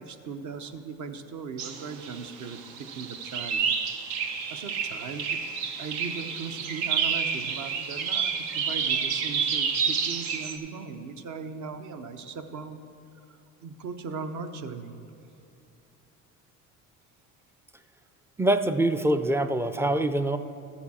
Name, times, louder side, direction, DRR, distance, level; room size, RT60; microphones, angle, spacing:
voice 1, 0.0-3.7 4.5-5.4 5.8-12.8 13.6-15.0, right 5 dB, 55° right, 7 dB, 0.8 m, -38 dB
sound 1, 1.6-10.6, right 6 dB, 85° right, 0.8 m, -29 dB
voice 2, 18.4-20.4, right 1 dB, 10° right, 9 dB, 0.3 m, -24 dB
13.0 x 7.1 x 4.2 m, 2.8 s
supercardioid pair, 90°, 35 cm